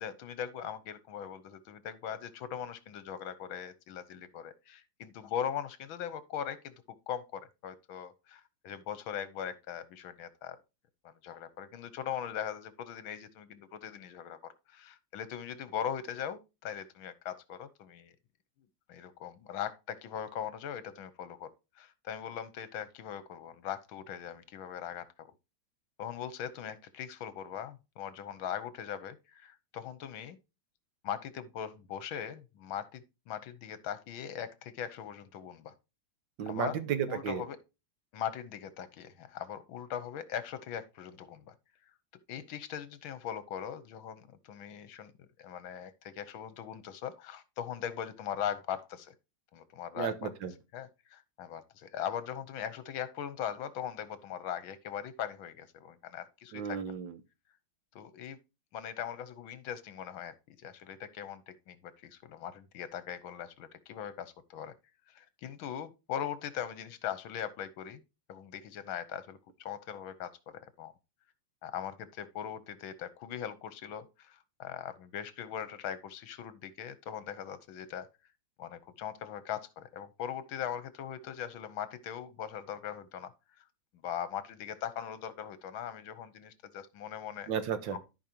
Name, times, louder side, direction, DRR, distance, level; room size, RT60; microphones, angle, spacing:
voice 1, 0.0-6.7 7.1-10.6 11.0-18.1 18.9-21.5 21.8-25.3 26.0-30.4 31.0-35.7 36.5-36.8 37.1-37.6 38.1-41.5 42.3-49.1 49.5-50.3 50.7-56.8 57.9-58.4 58.7-64.7 65.1-68.0 68.3-70.9 71.6-78.1 78.6-83.3 84.0-87.5 87.9-88.0, left 9 dB, 75° left, 1.7 m, -40 dB
voice 2, 36.4-37.4 50.0-50.5 56.5-57.1 87.5-88.0, right 8 dB, 70° right, 1.6 m, -33 dB
14.0 x 5.1 x 2.9 m
omnidirectional pair, 2.3 m